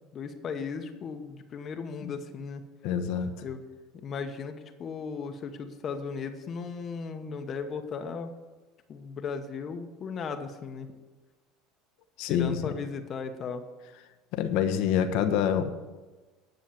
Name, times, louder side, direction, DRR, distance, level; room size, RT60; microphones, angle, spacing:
voice 1, 0.1-2.6 3.4-3.6 3.9-8.3 8.9-10.9 12.3-13.6, left 5 dB, 40° left, 6 dB, 1.0 m, -36 dB
voice 2, 2.8-3.4 12.2-12.8 14.3-15.7, left 8 dB, 70° left, 8 dB, 1.0 m, -27 dB
10.5 x 6.4 x 7.3 m, 1.2 s
supercardioid pair, 105°, 0 cm